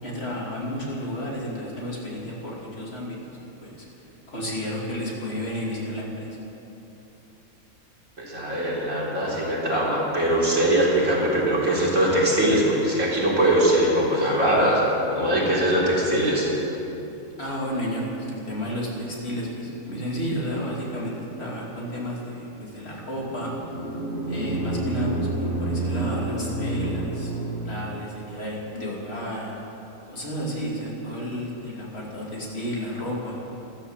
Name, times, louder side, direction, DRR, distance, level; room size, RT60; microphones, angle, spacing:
voice 1, 0.0-3.9 4.3-6.4 17.4-23.5 24.3-27.3 27.6-29.5 30.1-33.4, equal, 45° left, -4 dB, 3.1 m, -32 dB
voice 2, 8.2-14.8 15.1-16.5, right 1 dB, 55° right, -6 dB, 4.3 m, -21 dB
sound 1, 23.1-28.1, right 2 dB, 5° right, 3.4 m, -29 dB
14.0 x 13.0 x 7.4 m, 3.0 s
omnidirectional pair, 1.6 m